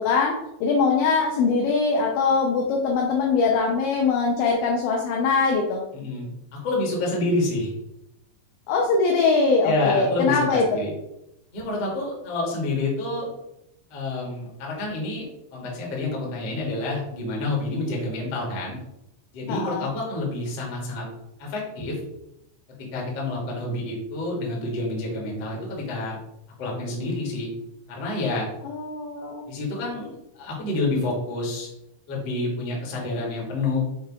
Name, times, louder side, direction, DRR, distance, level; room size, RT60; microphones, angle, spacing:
voice 1, 0.0-5.8 8.7-10.7 19.5-19.9 28.6-29.5, left 4 dB, 80° left, 0 dB, 2.6 m, -22 dB
voice 2, 5.9-7.7 9.6-10.9 11.5-13.3 13.9-15.3 15.5-18.8 19.3-21.1 21.4-22.0 22.9-26.2 26.6-27.5 27.9-28.5 29.5-31.7 32.1-33.9, left 2 dB, 50° left, -3 dB, 1.9 m, -28 dB
8.0 x 3.3 x 4.8 m, 0.84 s
omnidirectional pair, 6.0 m